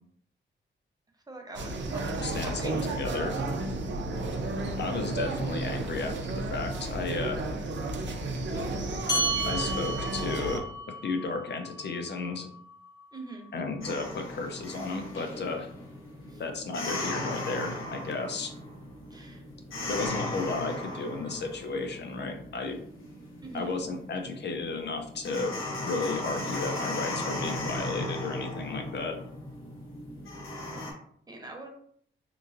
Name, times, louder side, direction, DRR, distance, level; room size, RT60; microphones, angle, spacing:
voice 1, 1.3-3.0 13.1-13.5 16.3-16.4 19.1-19.4 19.9-20.2 23.4-23.8 31.3-31.7, right 2 dB, 20° right, 2 dB, 0.6 m, -44 dB
sound 1, 1.5-10.6, right 2 dB, 65° right, 0.5 m, -32 dB
voice 2, 2.2-3.3 4.8-7.4 9.5-10.6 11.0-12.5 13.5-15.7 16.4-18.5 19.9-22.8 23.5-25.5 25.8-29.2, left 3 dB, 60° left, 5 dB, 0.5 m, -33 dB
sound 2, 9.1-13.9, right 1 dB, 20° left, 1.0 m, -34 dB
sound 3, 13.8-30.9, left 1 dB, 85° left, 0.8 m, -37 dB
3.0 x 2.5 x 2.5 m, 0.63 s
wide cardioid pair, 100°, 20 cm